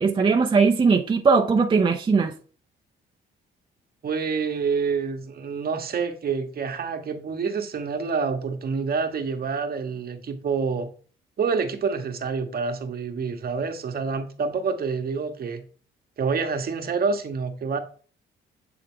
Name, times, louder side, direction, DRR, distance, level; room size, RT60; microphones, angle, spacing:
voice 1, 0.0-2.3, right 4 dB, 25° right, 0.6 m, -19 dB
voice 2, 4.0-10.9 11.4-15.6 16.2-17.8, right 5 dB, 50° right, 1.0 m, -27 dB
7.8 x 3.6 x 3.6 m
cardioid pair, 90°, 20 cm